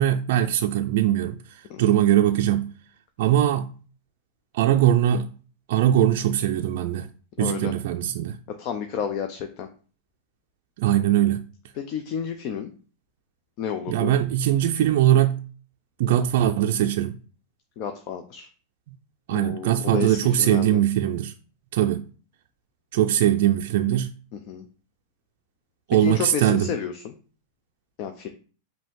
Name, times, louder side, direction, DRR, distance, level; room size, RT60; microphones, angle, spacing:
voice 1, 0.0-2.7 3.2-3.7 4.5-5.3 5.7-7.1 7.4-8.4 10.8-11.4 13.9-15.4 16.0-17.2 19.3-21.3 21.7-22.0 22.9-24.1 25.9-26.7, right 11 dB, 65° right, 0.3 m, -21 dB
voice 2, 7.4-7.7 8.5-9.7 11.7-12.7 13.6-14.2 17.8-18.5 19.3-20.8 24.3-24.7 26.0-27.1 28.0-28.3, left 7 dB, 50° left, 0.5 m, -31 dB
5.2 x 2.7 x 3.6 m
hypercardioid pair, 125°, 0 cm